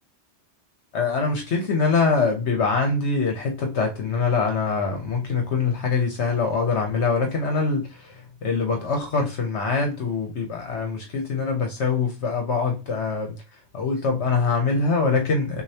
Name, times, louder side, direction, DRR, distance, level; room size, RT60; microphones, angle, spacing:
voice 1, 0.9-15.6, left 4 dB, 70° left, 3 dB, 1.2 m, -24 dB
6.6 x 2.6 x 2.8 m, 0.29 s
omnidirectional pair, 1.2 m